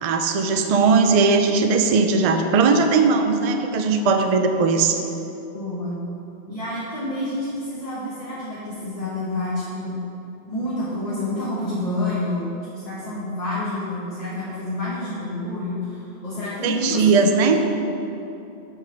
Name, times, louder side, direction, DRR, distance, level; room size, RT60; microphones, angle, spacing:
voice 1, 0.0-5.0 16.6-17.6, right 4 dB, 45° right, 5 dB, 0.5 m, -18 dB
voice 2, 5.5-6.0 6.5-10.0 10.5-12.5 12.7-17.6, left 1 dB, 35° left, -9 dB, 1.5 m, -28 dB
7.6 x 4.6 x 6.0 m, 2.9 s
omnidirectional pair, 1.1 m